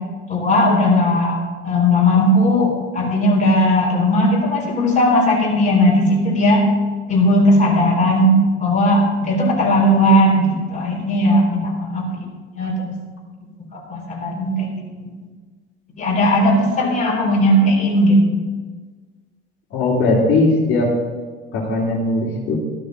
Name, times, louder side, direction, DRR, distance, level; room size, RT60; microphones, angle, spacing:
voice 1, 0.3-1.4 1.6-6.6 7.1-12.3 12.6-13.0 13.9-14.8 16.0-18.4, equal, 25° left, -3 dB, 3.9 m, -17 dB
voice 2, 19.7-20.9 21.5-22.6, left 2 dB, 40° left, -6 dB, 3.2 m, -18 dB
13.0 x 12.5 x 4.0 m, 1.4 s
figure-of-eight pair, 65°, 32 cm